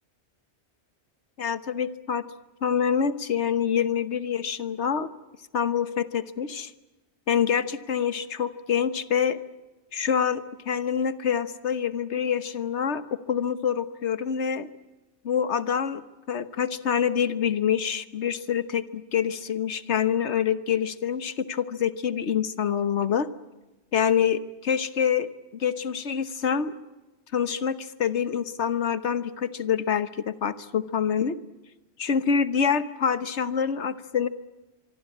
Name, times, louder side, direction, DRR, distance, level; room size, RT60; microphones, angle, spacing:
voice 1, 1.4-2.2 2.6-5.1 5.5-6.7 7.3-9.4 9.9-14.7 15.2-23.3 23.9-26.7 27.3-31.3 32.0-34.3, left 7 dB, 75° left, 13 dB, 1.4 m, -26 dB
25.0 x 24.5 x 8.6 m, 1.0 s
omnidirectional pair, 1.2 m